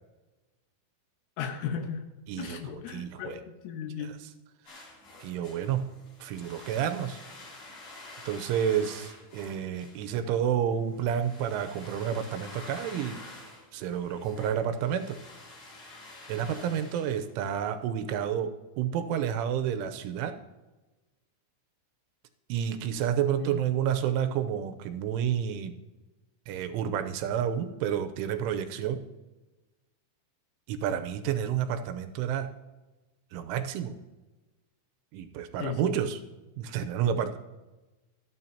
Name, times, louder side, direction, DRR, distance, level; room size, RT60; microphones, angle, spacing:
voice 1, 1.4-2.1 2.4-4.2 23.4-23.6 35.6-36.0, left 7 dB, 90° left, 5 dB, 3.9 m, -36 dB
voice 2, 2.3-3.4 5.2-5.9 6.2-7.2 8.3-13.2 13.7-15.2 16.3-20.3 22.5-25.7 26.5-29.1 30.7-32.6 33.3-34.0 35.1-36.2 36.6-37.4, right 9 dB, 90° right, 8 dB, 3.3 m, -30 dB
sound 1, 4.7-17.7, left 2 dB, 45° left, 5.6 m, -49 dB
25.0 x 9.3 x 2.9 m, 1.1 s
omnidirectional pair, 5.6 m